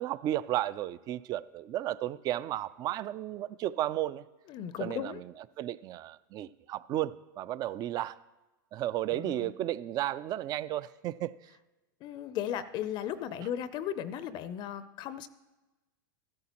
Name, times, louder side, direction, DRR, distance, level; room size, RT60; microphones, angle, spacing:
voice 1, 0.0-4.2 4.8-5.3 5.6-8.2 8.7-11.3, right 13 dB, 35° right, 0.3 m, -33 dB
voice 2, 4.5-5.2 9.1-9.5 12.0-15.3, left 10 dB, 40° left, 0.5 m, -36 dB
14.0 x 12.5 x 2.9 m
hypercardioid pair, 120°, 11 cm